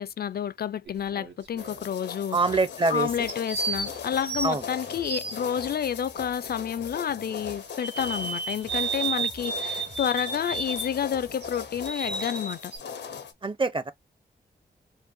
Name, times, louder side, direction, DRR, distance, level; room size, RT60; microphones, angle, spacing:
voice 1, 0.0-2.4 2.9-12.7, left 8 dB, 65° left, 0.4 m, -30 dB
sound 1, 0.9-1.8 3.3-5.7 7.8-11.0 11.4-12.8, right 4 dB, 85° right, 1.5 m, -33 dB
sound 2, 1.6-13.3, left 7 dB, 90° left, 0.7 m, -40 dB
voice 2, 2.3-3.1 4.4-4.6 13.4-13.9, right 3 dB, 30° right, 0.6 m, -24 dB
Bass guitar, 2.4-2.8 3.0-7.7 8.0-12.3, right 2 dB, 65° right, 2.1 m, -52 dB
4.6 x 2.2 x 2.6 m
cardioid pair, 70°, 17 cm